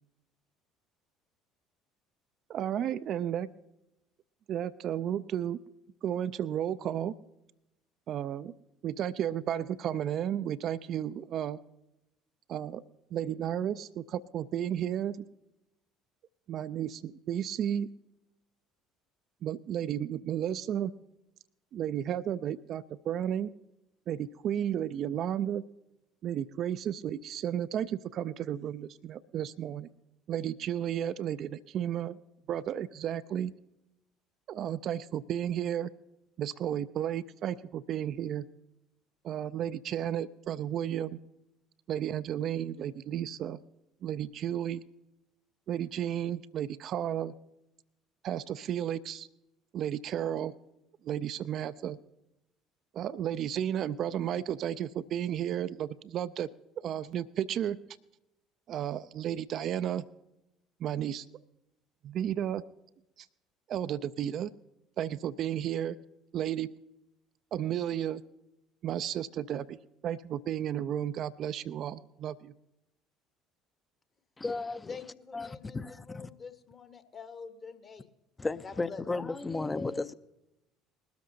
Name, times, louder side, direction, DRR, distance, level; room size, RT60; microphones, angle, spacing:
voice 1, 2.5-3.5 4.5-5.6 6.0-7.1 8.1-8.5 8.8-11.6 12.5-12.8 13.1-15.2 16.5-17.9 19.4-20.9 21.7-23.5 24.1-25.6 26.2-29.9 30.3-32.2 32.5-33.5 34.5-35.9 36.4-38.5 39.2-41.2 41.9-43.6 44.0-44.8 45.7-47.3 48.2-49.3 49.7-50.5 51.0-52.0 52.9-56.5 56.8-57.8 58.7-60.1 60.8-61.3 62.0-62.6 63.2-63.3 63.7-64.5 65.0-66.0 66.3-66.7 67.5-68.2 68.8-69.8 70.0-72.5, right 10 dB, 50° right, 0.4 m, -33 dB
voice 2, 74.4-75.0 75.3-76.3 78.4-80.1, left 3 dB, 20° left, 0.5 m, -34 dB
voice 3, 74.9-78.1 78.6-79.1, left 5 dB, 35° left, 1.1 m, -46 dB
20.5 x 13.0 x 2.7 m
figure-of-eight pair, 60°, 0 cm